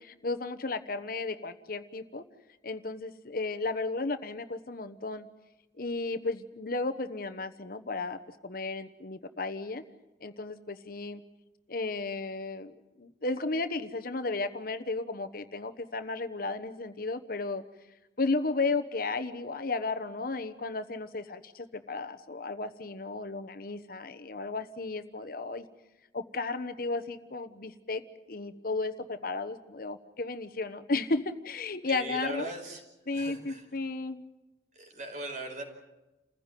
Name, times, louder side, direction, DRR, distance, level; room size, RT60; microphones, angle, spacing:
voice 1, 0.0-2.2 2.6-5.3 5.8-9.8 10.2-11.2 11.7-17.6 18.2-25.6 26.1-28.0 28.3-32.5 33.1-34.2, left 3 dB, 55° left, 10 dB, 1.1 m, -34 dB
voice 2, 31.9-32.8 33.1-33.6 34.7-35.6, right 2 dB, 45° right, 4 dB, 4.9 m, -39 dB
29.0 x 15.5 x 9.1 m, 1.0 s
head